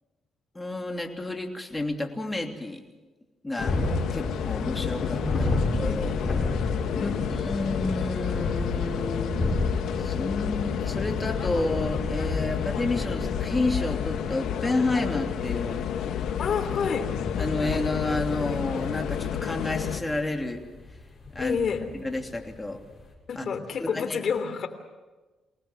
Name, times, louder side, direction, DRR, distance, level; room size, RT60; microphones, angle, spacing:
voice 1, 0.5-2.8 3.4-3.8 4.1-6.2 6.9-9.4 10.0-15.8 17.4-20.6 21.3-21.6 21.9-22.8 23.3-23.4 23.8-24.2, left 2 dB, 15° left, 3 dB, 3.2 m, -30 dB
sound 1, 3.6-20.0, left 9 dB, 80° left, 1.7 m, -30 dB
sound 2, 3.6-23.1, left 2 dB, 35° left, 7.3 m, -33 dB
voice 2, 16.4-17.1 21.4-21.9 23.3-24.7, left 6 dB, 55° left, 8 dB, 3.2 m, -28 dB
25.0 x 18.5 x 7.5 m, 1.2 s
cardioid pair, 90°, 0 cm